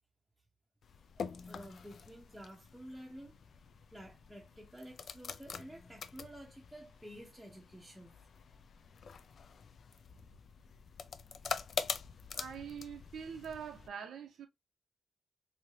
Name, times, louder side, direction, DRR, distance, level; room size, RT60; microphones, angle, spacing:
sound 1, 0.8-13.9, left 6 dB, 55° left, 0.3 m, -45 dB
voice 1, 1.2-3.4 3.9-8.2, equal, ahead, 0.7 m, -51 dB
voice 2, 12.3-14.5, right 7 dB, 80° right, 0.5 m, -44 dB
3.2 x 2.7 x 2.7 m
cardioid pair, 115°, 0 cm